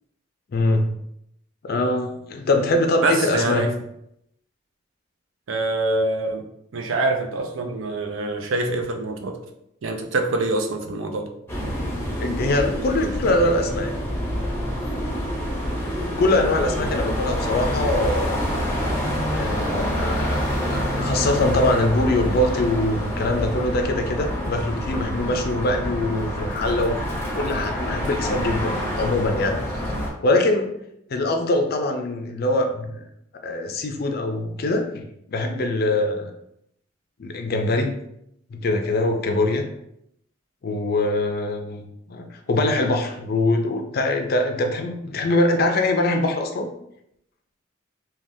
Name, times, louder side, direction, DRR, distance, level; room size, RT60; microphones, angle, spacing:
voice 1, 0.5-0.9 1.6-3.7 12.2-13.9 16.2-18.5 19.3-27.0 27.4-29.6 30.2-30.7 31.1-33.1 33.4-36.3 37.2-37.9 38.5-39.6 40.6-46.7, left 2 dB, 50° left, 4 dB, 0.4 m, -23 dB
voice 2, 3.0-3.7 5.5-6.4 6.7-9.4 9.8-11.3, right 2 dB, 80° right, 5 dB, 0.5 m, -25 dB
sound 1, 11.5-30.1, equal, 10° left, 0.6 m, -27 dB
3.4 x 2.2 x 2.6 m, 0.78 s
head